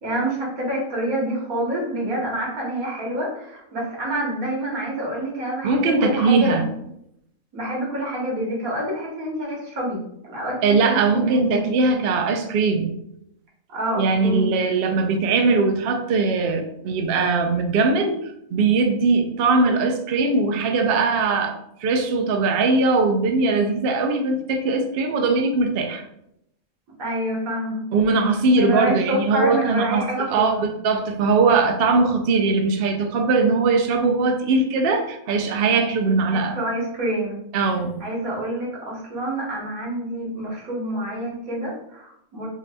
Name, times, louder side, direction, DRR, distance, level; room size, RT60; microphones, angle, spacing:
voice 1, 0.0-6.6 7.5-11.7 13.7-14.5 27.0-27.8 28.6-30.7 36.3-37.4 38.0-42.5, right 1 dB, 90° right, -3 dB, 1.7 m, -27 dB
voice 2, 5.6-6.6 10.6-12.9 14.0-26.0 27.9-36.6 37.5-38.0, right 3 dB, 65° right, 5 dB, 0.6 m, -20 dB
4.7 x 2.6 x 2.2 m, 0.77 s
omnidirectional pair, 1.4 m